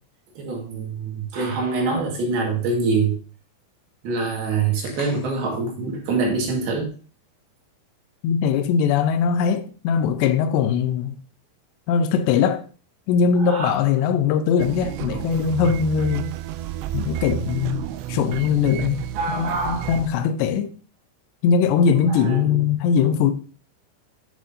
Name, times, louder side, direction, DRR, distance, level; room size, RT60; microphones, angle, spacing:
voice 1, 0.4-3.2 4.0-6.9 13.4-13.7 19.2-20.0 22.1-22.7, right 4 dB, 65° right, 3.6 m, -25 dB
sound 1, 4.7-5.6, left 3 dB, 50° left, 1.6 m, -42 dB
voice 2, 8.2-11.2 11.9-12.6 13.1-16.3 16.9-19.0 19.4-20.7 21.4-23.3, left 7 dB, 85° left, 2.8 m, -21 dB
sound 2, 14.6-20.1, right 12 dB, 85° right, 2.7 m, -31 dB
10.5 x 6.4 x 2.7 m
omnidirectional pair, 4.9 m